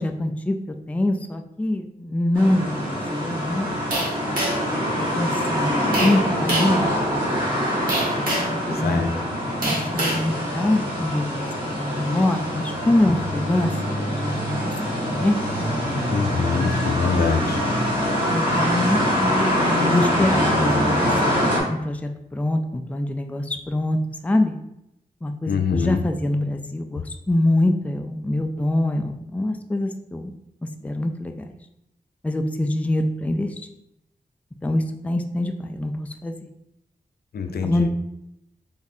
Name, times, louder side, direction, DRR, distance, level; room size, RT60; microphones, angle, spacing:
voice 1, 0.0-3.7 4.7-5.8 6.0-6.9 8.7-9.2 9.6-16.1 18.3-19.6 19.8-21.1 21.4-24.5 25.2-30.3 30.8-31.5 32.2-33.5 34.6-36.3 37.6-37.9, left 1 dB, 10° left, 5 dB, 0.3 m, -24 dB
sound 1, 2.3-21.6, equal, 30° right, 1.5 m, -24 dB
sound 2, 3.9-4.7 5.9-6.2 6.5-6.8 7.9-8.6 9.6-10.2, right 1 dB, 60° right, 1.3 m, -25 dB
voice 2, 16.1-17.6 25.5-26.0 37.3-37.9, left 5 dB, 75° left, 6 dB, 0.4 m, -24 dB
4.0 x 3.5 x 2.7 m, 0.84 s
wide cardioid pair, 85°, 16 cm